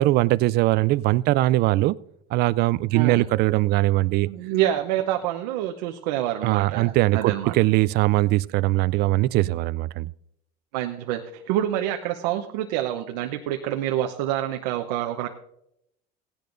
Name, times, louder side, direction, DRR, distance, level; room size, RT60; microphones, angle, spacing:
voice 1, 0.0-2.0 2.3-4.3 6.4-10.1, right 18 dB, 55° right, 0.4 m, -21 dB
voice 2, 2.9-3.3 4.2-7.5 10.7-15.3, right 12 dB, 85° right, 0.8 m, -27 dB
17.0 x 10.5 x 2.6 m
supercardioid pair, 115°, 21 cm